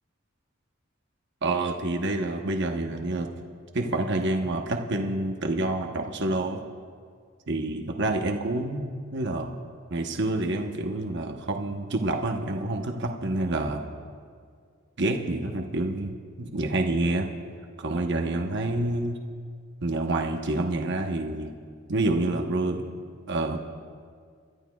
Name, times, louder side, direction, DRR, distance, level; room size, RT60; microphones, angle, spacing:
voice 1, 1.4-3.3 3.7-6.6 7.5-9.5 9.9-13.8 15.0-16.1 16.4-17.3 17.8-19.2 19.8-21.5 21.9-22.8 23.3-23.7, right 2 dB, 60° right, 3 dB, 0.9 m, -28 dB
30.0 x 12.5 x 2.3 m, 2.1 s
head